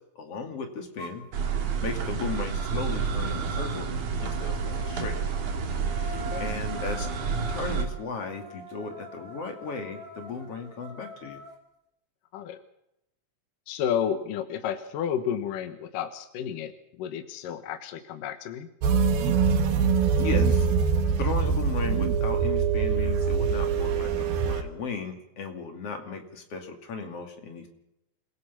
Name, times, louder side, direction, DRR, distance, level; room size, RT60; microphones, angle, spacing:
voice 1, 0.2-1.3 1.8-3.9 4.2-5.2 6.0-7.1 7.5-11.4 20.2-20.7 21.2-27.7, left 4 dB, 45° left, 4 dB, 3.3 m, -36 dB
sound 1, 1.0-1.2 4.1-11.6, equal, 30° right, 3.9 m, -44 dB
sound 2, 1.3-7.8, right 5 dB, 60° right, 3.6 m, -29 dB
voice 2, 13.7-18.7, left 8 dB, 70° left, 8 dB, 2.7 m, -31 dB
sound 3, 18.8-24.6, right 6 dB, 90° right, 3.5 m, -24 dB
28.0 x 17.0 x 5.7 m, 0.81 s
omnidirectional pair, 4.2 m